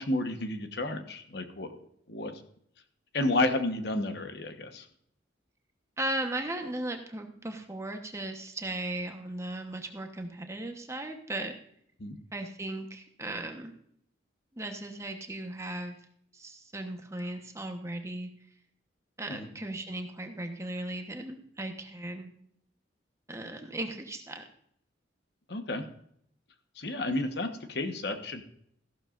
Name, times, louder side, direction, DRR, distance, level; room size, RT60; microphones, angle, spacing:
voice 1, 0.0-1.7 2.1-2.4 3.1-4.9 12.0-12.2 19.3-19.5 25.5-25.8 26.8-28.4, left 2 dB, 60° left, 7 dB, 1.1 m, -31 dB
voice 2, 6.0-11.5 12.3-13.7 14.5-16.0 16.3-18.3 19.2-22.3 23.3-24.4, right 1 dB, 15° right, 5 dB, 1.1 m, -37 dB
14.5 x 12.0 x 2.5 m, 0.68 s
head